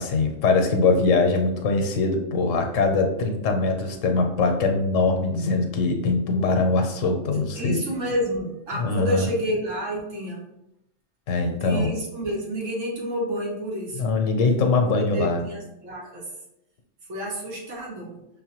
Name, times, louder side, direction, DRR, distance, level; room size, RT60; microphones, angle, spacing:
voice 1, 0.0-7.8 8.8-9.3 11.3-11.9 14.0-15.4, left 3 dB, 80° left, 4 dB, 1.0 m, -22 dB
voice 2, 7.5-10.5 11.6-14.0 14.8-16.3 17.1-18.2, equal, 85° right, -3 dB, 1.5 m, -29 dB
5.5 x 2.2 x 2.9 m, 0.84 s
omnidirectional pair, 1.3 m